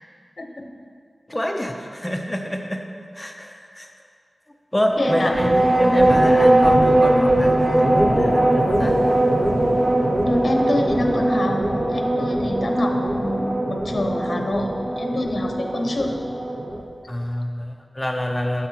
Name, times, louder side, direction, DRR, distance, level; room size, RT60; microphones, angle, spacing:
voice 1, 1.3-2.8 3.1-3.9 4.7-9.0 17.1-18.7, equal, 15° left, 3 dB, 0.6 m, -27 dB
sound 1, 4.9-16.8, right 1 dB, 40° right, 0.8 m, -20 dB
voice 2, 5.0-5.3 10.2-11.6 11.9-14.7 15.0-16.1, left 1 dB, 55° left, 2 dB, 0.8 m, -25 dB
9.5 x 7.5 x 2.9 m, 2.2 s
wide cardioid pair, 65°, 0 cm